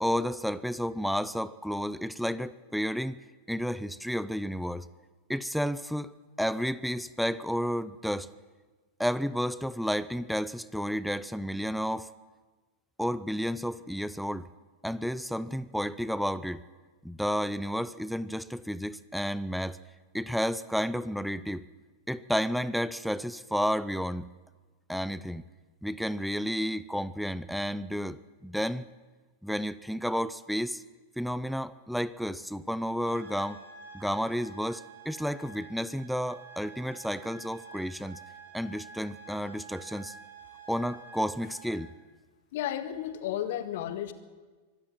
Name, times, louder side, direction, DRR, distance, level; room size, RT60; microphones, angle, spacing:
voice 1, 0.0-3.2 3.5-4.9 5.3-8.3 9.0-12.1 13.0-14.5 14.8-16.6 17.0-19.8 20.1-21.6 22.1-24.3 24.9-25.4 25.8-28.9 29.4-30.8 31.2-33.6 33.9-38.2 38.5-40.1 40.7-41.9, equal, ahead, 16 dB, 0.6 m, -31 dB
sound 1, 33.0-42.0, right 5 dB, 60° right, 5.9 m, -49 dB
voice 2, 42.5-44.1, left 11 dB, 55° left, 10 dB, 1.8 m, -33 dB
24.0 x 13.5 x 9.6 m, 1.4 s
figure-of-eight pair, 90°, 0 cm